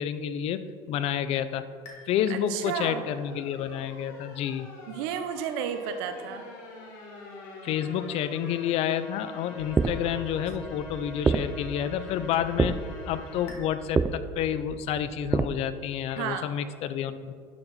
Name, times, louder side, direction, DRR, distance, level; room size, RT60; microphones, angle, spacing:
voice 1, 0.0-1.6 2.1-4.7 7.6-17.3, left 9 dB, 55° left, 12 dB, 0.5 m, -29 dB
sound 1, 1.8-13.6, left 3 dB, 75° left, 1.8 m, -45 dB
voice 2, 2.3-3.1 4.9-6.5 16.2-16.5, right 8 dB, 80° right, 8 dB, 0.7 m, -32 dB
sound 2, 9.6-15.5, right 4 dB, 15° right, 0.3 m, -30 dB
11.5 x 4.6 x 4.1 m, 2.1 s
supercardioid pair, 115°, 12 cm